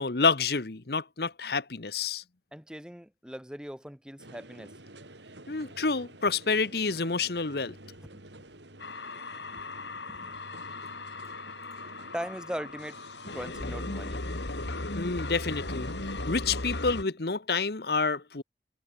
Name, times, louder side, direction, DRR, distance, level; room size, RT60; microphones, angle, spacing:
voice 1, 0.0-2.2 5.5-7.8 14.9-15.9 16.3-18.4, left 4 dB, 60° left, 1.1 m, -28 dB
voice 2, 2.5-4.7 8.1-8.2 10.1-10.4 12.1-13.0 13.3-14.6, equal, 5° right, 1.3 m, -40 dB
sound 1, 4.2-16.1, right 1 dB, 80° right, 5.9 m, -50 dB
sound 2, 8.8-17.0, left 2 dB, 75° left, 2.7 m, -37 dB
head